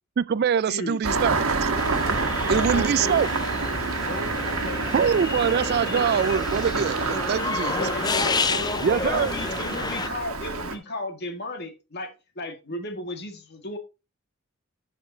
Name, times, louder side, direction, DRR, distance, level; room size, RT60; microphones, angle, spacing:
voice 1, 0.2-1.9 2.5-3.3 4.9-7.8 8.8-9.3, right 7 dB, 50° right, 0.3 m, -24 dB
voice 2, 0.7-1.0 3.0-3.4 7.9-8.0 8.7-13.8, left 2 dB, 50° left, 1.9 m, -35 dB
Engine starting, 1.0-10.8, right 3 dB, 90° right, 1.3 m, -28 dB
sound 1, 1.8-10.1, left 4 dB, 20° left, 0.4 m, -30 dB
voice 3, 2.4-3.2 4.0-5.1 7.7-9.3, left 1 dB, 85° left, 1.7 m, -35 dB
11.5 x 6.6 x 2.8 m
head